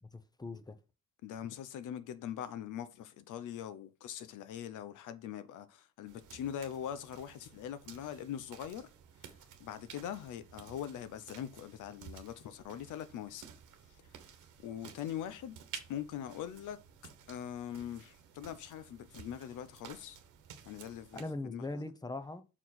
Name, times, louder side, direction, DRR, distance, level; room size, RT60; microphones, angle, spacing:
voice 1, 0.0-0.8 21.1-22.4, left 2 dB, 15° left, 0.8 m, -41 dB
voice 2, 1.2-8.9 9.6-13.4 14.6-15.6 15.9-16.8 17.3-20.2 20.7-21.9, left 10 dB, 85° left, 0.8 m, -42 dB
sound 1, 6.1-21.2, right 8 dB, 85° right, 1.1 m, -54 dB
6.0 x 4.7 x 4.0 m
cardioid pair, 90°, 30 cm